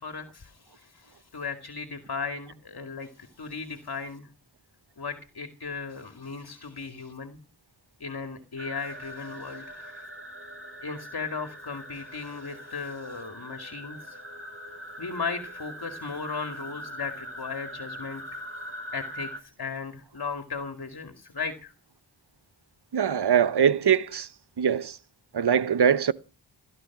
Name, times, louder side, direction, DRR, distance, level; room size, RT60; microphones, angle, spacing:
voice 1, 0.0-4.3 5.0-7.4 8.0-10.0 10.8-14.2 15.0-18.4 18.9-21.7, left 5 dB, 60° left, 2.3 m, -36 dB
sound 1, 8.6-19.4, equal, 30° right, 2.9 m, -42 dB
voice 2, 22.9-24.3 24.6-25.0 25.3-26.1, right 8 dB, 65° right, 0.9 m, -22 dB
17.0 x 12.0 x 6.0 m
cardioid pair, 45°, 43 cm